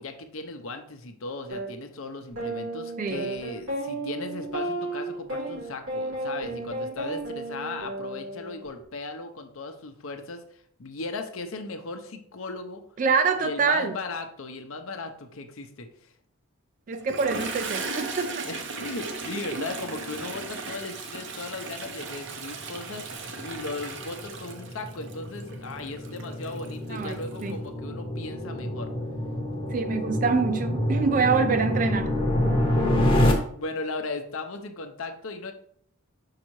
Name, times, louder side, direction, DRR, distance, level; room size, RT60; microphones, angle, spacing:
voice 1, 0.0-12.8 13.4-16.1 18.5-28.9 33.1-35.5, left 3 dB, 75° left, 0.7 m, -37 dB
sound 1, 1.5-1.7 2.4-8.7, right 2 dB, 90° right, 2.5 m, -33 dB
voice 2, 3.0-3.3 13.0-13.9 16.9-18.5 26.9-27.6 29.7-32.1, right 5 dB, 40° right, 0.3 m, -25 dB
Toilet flush, 16.9-27.5, right 4 dB, 55° right, 0.7 m, -37 dB
sound 2, 22.3-33.3, left 1 dB, 25° left, 0.8 m, -28 dB
6.4 x 4.7 x 3.1 m
head